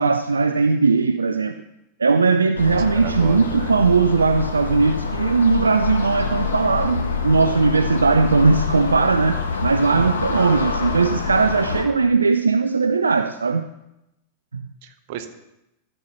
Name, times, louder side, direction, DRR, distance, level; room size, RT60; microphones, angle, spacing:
voice 1, 0.0-1.6 2.0-13.7 14.5-14.6, right 4 dB, 75° right, 0.3 m, -19 dB
sound 1, 2.6-11.8, left 5 dB, 70° left, 1.1 m, -26 dB
voice 2, 2.9-3.7 10.3-10.7 14.8-15.3, right 10 dB, 50° right, 0.9 m, -34 dB
13.5 x 7.1 x 3.1 m
figure-of-eight pair, 90°, 0 cm